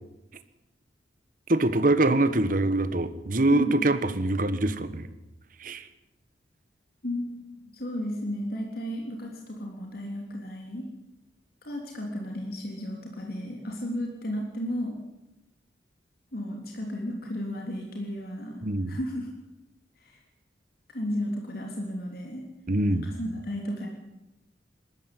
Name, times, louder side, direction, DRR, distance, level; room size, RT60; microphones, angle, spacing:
voice 1, 1.5-5.1 5.6-5.8 18.6-19.0 22.7-23.1, right 2 dB, 50° right, 11 dB, 1.5 m, -24 dB
voice 2, 3.4-3.8 7.0-7.3 7.7-10.9 11.6-15.0 16.3-19.3 20.0-20.2 20.9-22.4 23.0-23.9, equal, 55° left, 1 dB, 3.5 m, -34 dB
20.0 x 13.5 x 9.9 m, 0.96 s
head